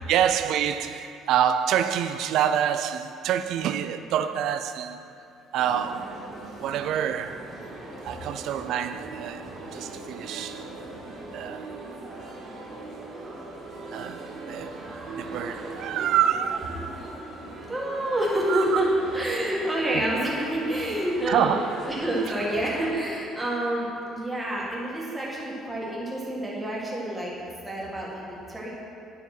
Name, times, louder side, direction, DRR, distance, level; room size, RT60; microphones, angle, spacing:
voice 1, 0.1-5.0 5.5-6.2 6.6-7.6 8.0-10.7 11.3-11.8 13.9-17.1 18.5-18.7 19.9-20.0 21.3-21.8 24.5-24.6, right 9 dB, 60° right, 0.4 m, -27 dB
sound 1, 5.6-22.9, right 2 dB, 40° right, 2.2 m, -40 dB
voice 2, 17.7-27.3 27.6-28.8, right 1 dB, 10° right, 1.6 m, -28 dB
9.8 x 5.7 x 6.0 m
cardioid pair, 165°, 0 cm